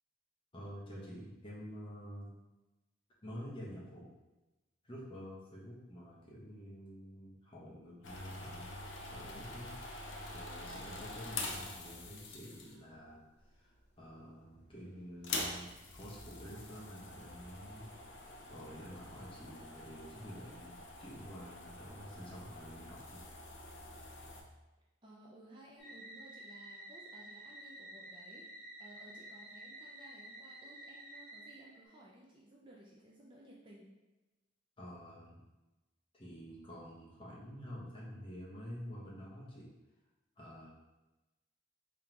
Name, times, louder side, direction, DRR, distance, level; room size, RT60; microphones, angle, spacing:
voice 1, 0.5-2.3 3.2-4.0 4.8-8.7 9.1-9.7 10.3-13.2 13.5-17.9 18.5-23.2 34.8-35.4 36.1-39.7 40.4-40.7, equal, 25° left, -6 dB, 1.0 m, -49 dB
sound 1, 8.0-12.9 13.7-14.2 14.4-14.5 15.1-24.4, left 2 dB, 70° left, 0.6 m, -45 dB
sound 2, 14.4-19.4, right 1 dB, 50° right, 1.3 m, -64 dB
voice 2, 25.0-33.9, right 1 dB, 25° right, -4 dB, 0.5 m, -58 dB
sound 3, 25.8-31.9, right 1 dB, 5° left, 1.4 m, -51 dB
3.7 x 3.6 x 2.9 m, 1.1 s
head